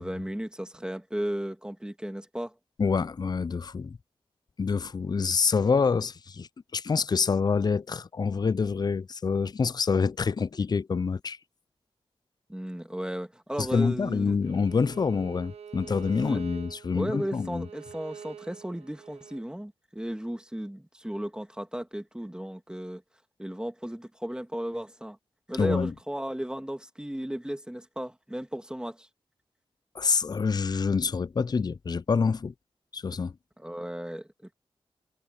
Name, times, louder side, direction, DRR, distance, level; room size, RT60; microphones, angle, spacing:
voice 1, 0.0-2.5 12.5-14.6 16.2-16.4 16.9-23.0 23.4-25.2 25.5-29.1 33.6-34.5, equal, 10° right, 2.0 m, -35 dB
voice 2, 2.8-4.0 4.6-6.5 6.7-11.4 13.6-17.7 25.6-25.9 30.0-32.5 32.9-33.3, left 5 dB, 40° left, 0.4 m, -26 dB
Bowed string instrument, 14.4-19.4, right 7 dB, 85° right, 0.7 m, -46 dB
cardioid pair, 60°, 10 cm